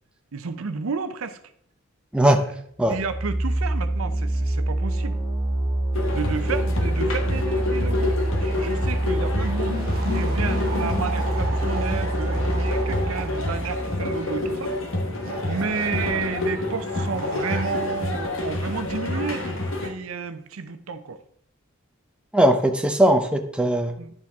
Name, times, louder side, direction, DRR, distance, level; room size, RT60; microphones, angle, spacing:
voice 1, 0.3-1.4 2.3-2.4 2.8-5.2 6.1-9.8 10.1-14.7 15.4-21.2 24.0-24.1, right 5 dB, 80° right, 11 dB, 0.6 m, -31 dB
sound 1, 2.9-14.7, right 1 dB, 20° right, 2.2 m, -26 dB
sound 2, 5.9-19.9, left 2 dB, 65° left, 1.2 m, -28 dB
sound 3, 9.9-13.9 15.2-16.4 16.9-17.9, right 4 dB, 45° right, 0.8 m, -37 dB
voice 2, 22.3-23.9, right 1 dB, 5° right, 4 dB, 0.5 m, -19 dB
10.5 x 4.7 x 3.5 m, 0.67 s
head